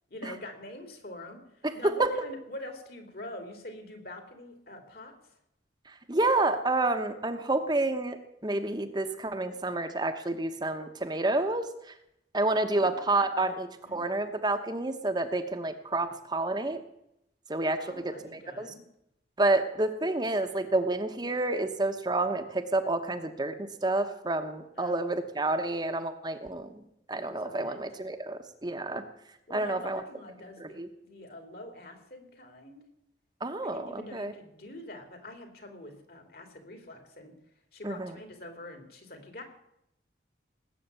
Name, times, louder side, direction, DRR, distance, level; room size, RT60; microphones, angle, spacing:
voice 1, 0.1-5.1 12.7-13.5 13.8-14.1 17.8-18.8 24.7-25.1 27.4-27.8 29.5-32.8 33.6-37.3 37.7-39.4, left 1 dB, 55° left, 5 dB, 3.0 m, -45 dB
voice 2, 5.9-8.2 8.4-11.9 12.3-16.8 17.5-18.7 19.4-26.8 27.1-29.0 29.5-30.0 30.6-30.9 33.4-34.3 37.8-38.1, right 2 dB, 25° right, 6 dB, 1.0 m, -29 dB
19.0 x 8.5 x 8.2 m, 0.80 s
head